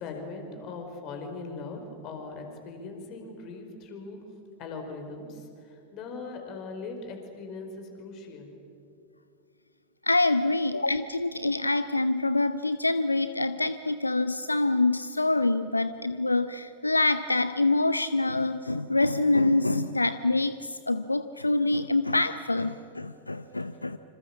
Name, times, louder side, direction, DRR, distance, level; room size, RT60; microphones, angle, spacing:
voice 1, 0.0-4.2 4.6-8.5, left 3 dB, 40° left, 4 dB, 4.9 m, -40 dB
voice 2, 10.0-24.0, left 2 dB, 85° left, 13 dB, 0.6 m, -26 dB
27.0 x 26.5 x 7.4 m, 2.6 s
figure-of-eight pair, 90°, 0 cm